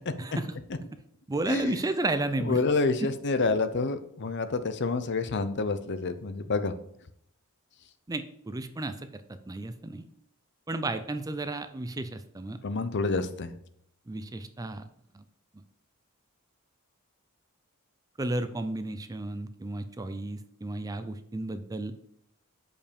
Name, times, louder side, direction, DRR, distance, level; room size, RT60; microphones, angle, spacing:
voice 1, 0.2-0.6 1.3-2.6 3.0-3.1 8.1-9.0 9.5-10.0 10.7-12.6 13.1-13.2 14.1-14.8 15.1-15.2 18.2-21.9, right 2 dB, 15° right, 10 dB, 0.4 m, -33 dB
voice 2, 2.4-6.7 12.6-13.5, left 3 dB, 50° left, 11 dB, 0.7 m, -28 dB
6.8 x 5.4 x 5.2 m, 0.71 s
head